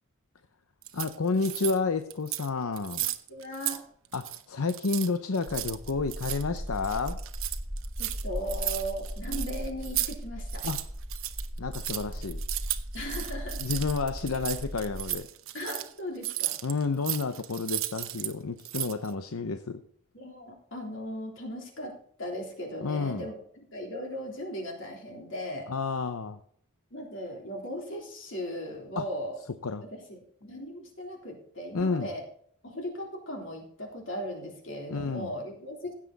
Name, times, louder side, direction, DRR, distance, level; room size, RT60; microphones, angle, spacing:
sound 1, 0.8-1.8 2.1-2.5 2.8-3.8 4.0-4.4 4.7-10.1 10.4-18.3 18.6-19.1, right 15 dB, 65° right, 0.9 m, -35 dB
voice 1, 0.9-3.1 4.1-7.2 10.6-10.8 11.6-12.4 13.6-15.3 16.6-19.8 22.8-23.3 25.7-26.4 29.0-29.1 29.6-29.8 31.7-32.1 34.9-35.3, left 4 dB, 80° left, 9 dB, 0.7 m, -30 dB
voice 2, 3.3-3.8 8.0-10.6 12.9-13.6 15.5-16.6 20.1-21.9 22.2-23.4 23.7-25.7 26.9-29.4 29.9-32.2 32.6-35.9, equal, 60° left, 1 dB, 3.5 m, -37 dB
sound 2, 5.5-15.1, equal, 10° right, 1.3 m, -37 dB
16.0 x 7.4 x 4.0 m, 0.62 s
head